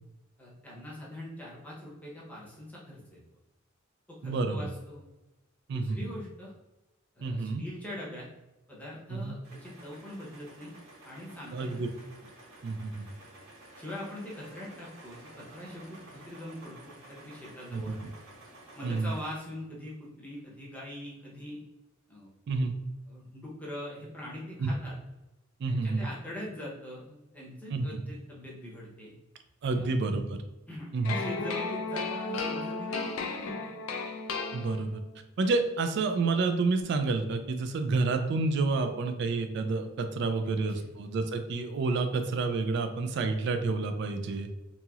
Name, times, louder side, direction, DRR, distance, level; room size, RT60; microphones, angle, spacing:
voice 1, 0.4-3.2 4.1-5.1 5.7-6.5 7.2-8.3 8.7-10.7 11.0-11.9 13.8-18.0 18.8-21.6 22.1-22.3 23.1-25.0 25.7-29.1 29.7-29.9 30.7-33.7 40.7-40.9, left 1 dB, 10° left, -5 dB, 0.7 m, -43 dB
voice 2, 4.2-4.7 5.7-6.1 7.2-7.6 9.1-9.4 11.5-11.9 12.6-13.1 17.7-18.1 18.8-19.1 22.5-22.8 24.6-24.7 25.6-26.1 27.7-28.0 29.6-30.4 30.9-31.2 34.5-35.0 35.4-44.5, right 3 dB, 55° right, 7 dB, 0.3 m, -29 dB
sound 1, 9.4-19.4, right 1 dB, 80° right, 0.8 m, -52 dB
sound 2, 31.0-35.1, left 3 dB, 80° left, 0.4 m, -34 dB
2.9 x 2.8 x 2.3 m, 1.0 s
head